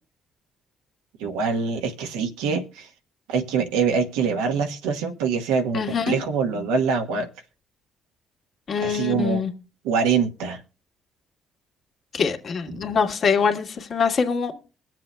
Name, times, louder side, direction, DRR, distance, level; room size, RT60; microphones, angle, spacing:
voice 1, 1.2-2.9 3.3-7.3 8.8-9.4 9.8-10.6 12.7-12.9, right 5 dB, 85° right, 1.1 m, -24 dB
voice 2, 5.7-6.2 8.7-9.5 12.1-14.5, left 6 dB, 55° left, 1.7 m, -24 dB
21.5 x 7.6 x 2.2 m
hypercardioid pair, 55°, 0 cm